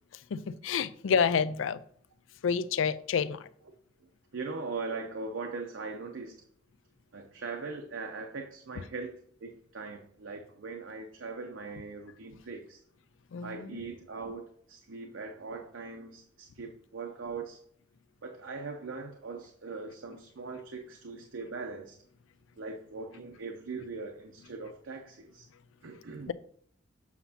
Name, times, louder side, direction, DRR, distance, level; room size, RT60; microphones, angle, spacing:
voice 1, 0.3-1.8 2.4-3.5 13.3-13.8 26.3-26.4, left 6 dB, 80° left, 15 dB, 0.4 m, -29 dB
voice 2, 4.3-6.4 7.1-12.8 13.4-17.6 18.2-22.0 22.6-25.5 25.8-26.3, right 4 dB, 80° right, 3 dB, 0.7 m, -40 dB
7.3 x 5.9 x 2.8 m, 0.64 s
head